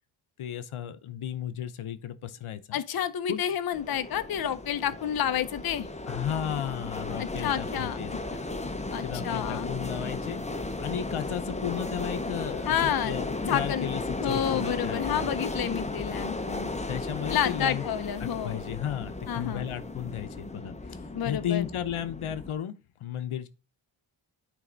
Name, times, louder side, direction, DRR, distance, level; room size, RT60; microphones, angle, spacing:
voice 1, 0.4-2.8 3.3-3.4 6.1-8.1 9.0-10.4 10.8-15.4 16.9-17.9 18.2-21.0 21.2-22.8 23.0-23.5, left 10 dB, 80° left, 0.8 m, -34 dB
voice 2, 2.7-5.9 7.2-8.4 8.9-9.7 12.6-13.9 14.2-16.7 17.3-18.6 19.3-19.6 21.1-21.7, left 9 dB, 50° left, 0.6 m, -30 dB
sound 1, 3.7-22.5, left 2 dB, 15° left, 0.8 m, -35 dB
9.1 x 3.5 x 3.9 m
wide cardioid pair, 70°, 49 cm